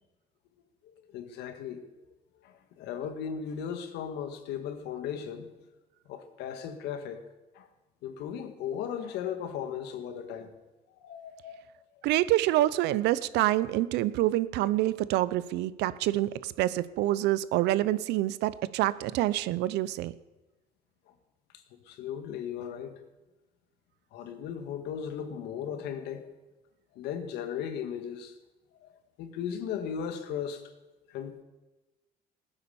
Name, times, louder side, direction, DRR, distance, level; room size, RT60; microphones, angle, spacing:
voice 1, 1.1-1.8 2.4-5.5 6.1-7.2 7.5-7.7 8.0-10.5 11.0-11.6 21.9-23.0 24.1-26.3 27.0-28.3 28.8-28.9 29.2-30.7 31.1-31.4, left 8 dB, 85° left, 1.8 m, -36 dB
voice 2, 12.0-20.1, right 15 dB, 85° right, 0.7 m, -27 dB
17.0 x 10.0 x 7.0 m
cardioid pair, 110°, 17 cm